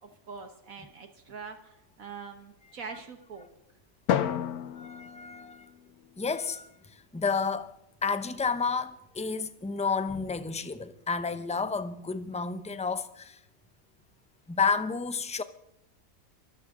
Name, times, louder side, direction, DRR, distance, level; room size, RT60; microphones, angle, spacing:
voice 1, 0.0-3.5, right 5 dB, 65° right, 1.7 m, -44 dB
Drum, 4.1-6.4, left 9 dB, 85° left, 1.4 m, -32 dB
voice 2, 4.8-5.7 6.2-6.7 7.1-7.7 8.0-13.4 14.5-15.4, left 5 dB, 10° left, 0.4 m, -30 dB
24.0 x 14.0 x 3.8 m
omnidirectional pair, 1.6 m